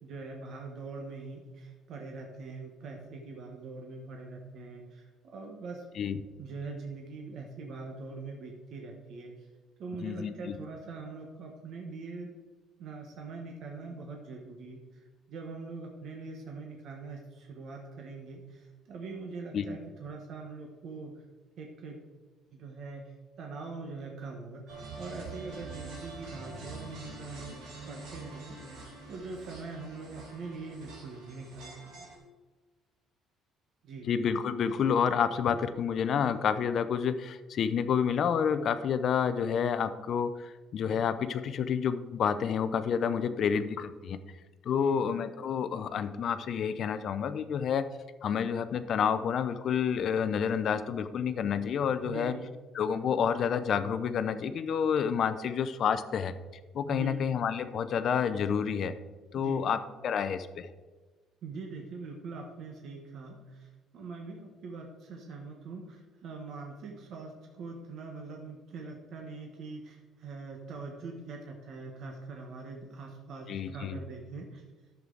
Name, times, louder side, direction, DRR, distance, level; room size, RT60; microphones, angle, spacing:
voice 1, 0.0-5.8 6.4-9.5 9.8-12.3 12.8-21.1 21.6-22.0 22.5-27.6 27.9-32.0 33.8-34.1 44.8-45.1 52.0-52.5 56.9-57.2 59.3-59.7 61.4-74.6, right 3 dB, 45° right, 1 dB, 1.2 m, -43 dB
voice 2, 10.0-10.5 19.5-19.6 34.1-44.2 44.6-47.8 48.2-52.3 52.7-56.3 56.7-58.9 59.3-59.8 60.0-60.7 73.5-74.0, left 7 dB, 40° left, 11 dB, 0.5 m, -29 dB
sound 1, 24.7-32.2, right 3 dB, 65° right, 3.4 m, -45 dB
11.0 x 7.4 x 3.9 m, 1.3 s
cardioid pair, 175°, 0 cm